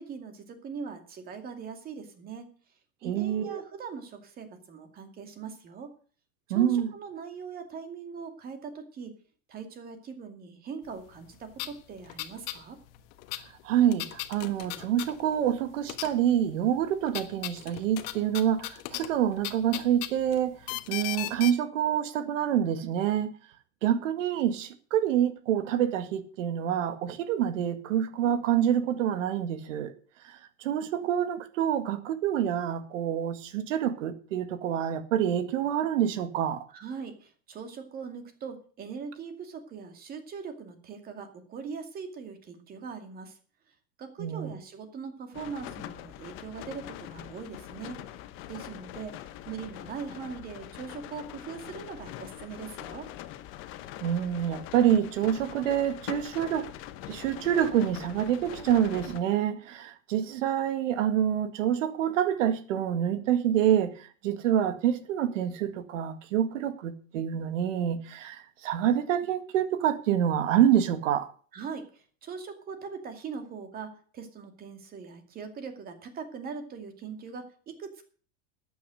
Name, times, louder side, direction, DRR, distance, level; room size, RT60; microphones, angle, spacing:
voice 1, 0.0-2.5 3.0-5.9 6.5-9.2 9.5-12.8 36.7-43.4 44.0-48.0 48.5-53.1 71.5-78.0, right 5 dB, 25° right, 2.3 m, -41 dB
voice 2, 3.0-3.6 6.5-6.9 13.6-23.3 23.8-29.9 30.2-36.6 44.2-44.5 54.0-56.7 57.1-71.3, right 10 dB, 75° right, 2.0 m, -27 dB
sound 1, 11.2-11.3 11.5-12.6 12.9-15.6 15.8-16.5 16.8-21.5, left 16 dB, 50° left, 1.4 m, -37 dB
sound 2, 45.3-59.2, left 13 dB, 30° left, 1.0 m, -43 dB
13.5 x 9.4 x 6.4 m
supercardioid pair, 165°, 38 cm